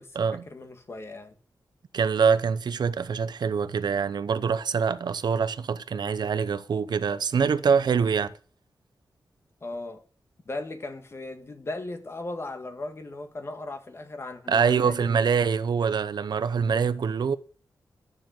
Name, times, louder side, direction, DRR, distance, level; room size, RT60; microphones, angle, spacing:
voice 1, 0.5-1.3 9.6-10.0 10.5-15.3, left 2 dB, 35° left, 1.8 m, -37 dB
voice 2, 1.9-8.3 14.5-17.3, right 6 dB, 70° right, 0.8 m, -24 dB
12.0 x 7.2 x 7.7 m
wide cardioid pair, 155°, 8 cm